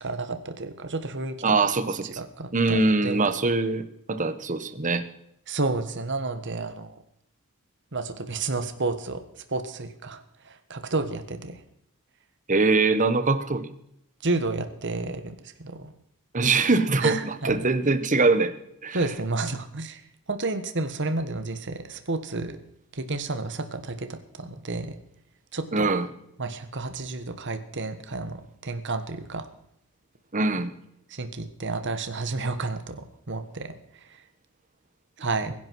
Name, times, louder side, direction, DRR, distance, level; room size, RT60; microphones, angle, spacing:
voice 1, 0.0-1.3 2.2-3.2 5.5-6.9 7.9-9.2 9.5-11.6 14.2-15.9 17.0-17.5 18.9-20.0 20.3-22.6 22.9-24.9 25.5-25.9 26.4-29.5 31.1-33.7 35.2-35.5, right 3 dB, 55° right, 9 dB, 1.5 m, -31 dB
voice 2, 1.4-2.1 2.5-5.0 12.5-13.7 16.3-18.5 18.8-19.0 25.7-26.1 30.3-30.7, right 3 dB, 35° right, 11 dB, 1.2 m, -23 dB
23.0 x 11.0 x 4.7 m, 0.75 s
head